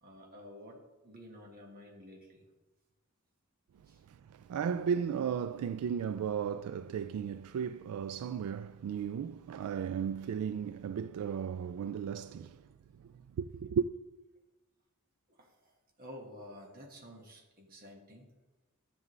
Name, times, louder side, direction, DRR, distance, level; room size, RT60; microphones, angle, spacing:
voice 1, 0.0-2.5 3.8-4.0 15.3-15.7 16.0-18.3, left 1 dB, 40° right, 1.5 m, -51 dB
voice 2, 4.1-12.6 13.0-13.1 13.4-13.9, right 7 dB, 80° right, 0.3 m, -35 dB
12.5 x 7.3 x 3.2 m
head